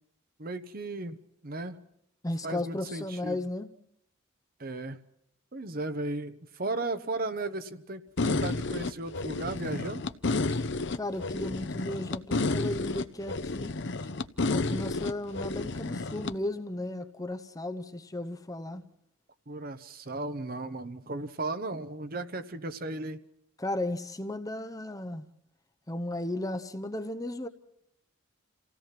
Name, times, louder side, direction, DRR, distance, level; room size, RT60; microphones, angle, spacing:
voice 1, 0.4-1.2 1.4-1.8 2.4-3.4 4.6-5.0 5.5-10.0 19.5-23.2, right 2 dB, 45° right, 1.0 m, -35 dB
voice 2, 2.2-3.7 10.5-10.6 10.9-14.1 14.5-18.8 23.6-25.3 25.9-27.5, left 1 dB, 15° left, 0.8 m, -35 dB
sound 1, 8.2-16.3, left 3 dB, 55° left, 0.8 m, -31 dB
29.0 x 16.5 x 5.9 m
head